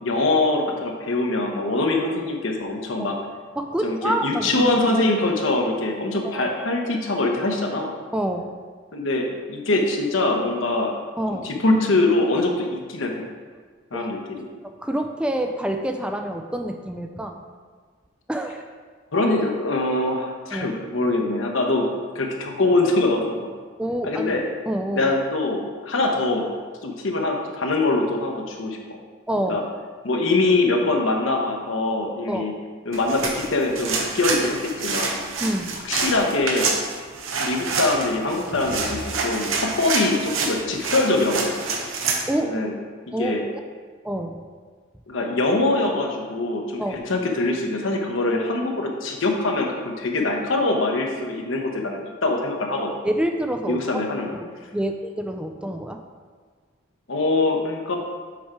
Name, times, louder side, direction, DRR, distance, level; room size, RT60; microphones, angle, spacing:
voice 1, 0.0-3.1 3.8-7.9 8.9-11.0 11.3-13.3 13.9-14.5 19.1-21.9 22.1-23.5 24.0-24.4 24.8-26.5 26.8-28.8 29.5-29.6 30.0-32.5 32.9-35.2 35.8-36.7 37.4-41.6 42.4-42.7 43.2-43.4 45.1-52.9 53.7-54.3 57.1-58.0, left 2 dB, 75° left, 1 dB, 1.0 m, -23 dB
voice 2, 3.6-4.7 6.3-6.5 8.1-8.5 11.2-11.5 13.9-14.1 14.6-17.4 18.3-18.6 20.5-20.8 23.8-24.3 24.7-25.1 29.3-29.6 32.3-32.4 35.4-35.8 42.3-42.6 43.1-43.4 44.0-44.4 46.8-47.0 53.0-54.0 54.3-54.5 54.7-56.0, right 1 dB, 5° right, 5 dB, 0.3 m, -27 dB
sound 1, 32.9-42.2, right 4 dB, 90° right, 1.0 m, -27 dB
7.2 x 4.4 x 4.7 m, 1.6 s
head